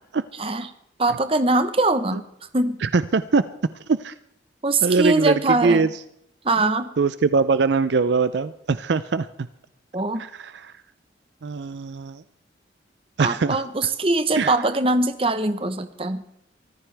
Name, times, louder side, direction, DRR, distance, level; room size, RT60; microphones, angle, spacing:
voice 1, 0.4-0.7 1.0-2.2 2.5-2.8 4.6-5.9 6.4-6.9 9.9-10.2 13.2-16.2, right 2 dB, 30° right, 11 dB, 0.9 m, -22 dB
voice 2, 2.8-3.4 3.9-4.1 4.8-5.9 7.0-9.3 10.2-10.5 11.4-12.2 13.2-13.6 14.4-14.5, right 4 dB, 65° right, 14 dB, 0.5 m, -22 dB
24.5 x 14.5 x 3.4 m, 0.74 s
head